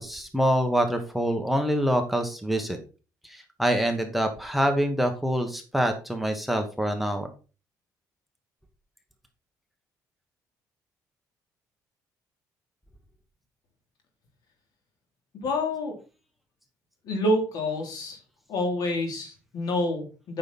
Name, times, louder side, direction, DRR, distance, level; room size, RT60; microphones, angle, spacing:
voice 1, 0.0-2.8 3.2-7.3, equal, ahead, 6 dB, 1.1 m, -25 dB
voice 2, 15.3-15.9 17.0-18.2 18.5-20.4, left 1 dB, 70° left, 2 dB, 3.3 m, -28 dB
8.9 x 5.8 x 4.1 m, 0.34 s
cardioid pair, 135°, 7 cm